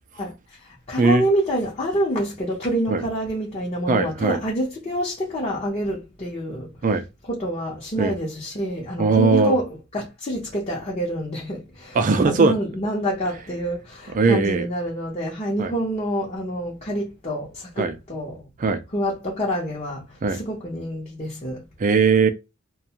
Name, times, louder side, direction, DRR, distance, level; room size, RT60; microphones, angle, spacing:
voice 1, 0.6-6.7 7.3-18.4 18.9-21.6, equal, 30° left, 0.7 m, -27 dB
voice 2, 3.9-4.4 6.8-7.0 8.0-8.1 9.0-9.6 11.9-12.5 14.1-14.7 15.6-15.7 17.8-18.0 18.6-18.8 20.2-20.4 21.8-22.3, right 4 dB, 40° right, 0.4 m, -19 dB
2.5 x 2.2 x 2.8 m
head